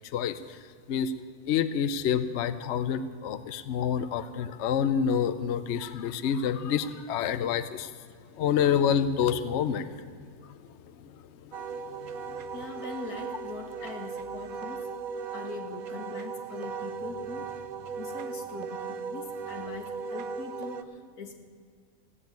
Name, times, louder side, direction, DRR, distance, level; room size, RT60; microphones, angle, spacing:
voice 1, 0.1-0.6 0.9-1.1 1.5-7.9 8.4-9.9 11.0-11.1 12.0-12.4, left 8 dB, 60° left, 11 dB, 0.8 m, -28 dB
Wind instrument woodwind instrument, 11.5-20.8, right 5 dB, 75° right, 1.2 m, -37 dB
voice 2, 12.5-14.9 15.3-21.4, left 5 dB, 85° left, 5 dB, 1.9 m, -42 dB
15.5 x 8.0 x 9.2 m, 2.1 s
omnidirectional pair, 1.6 m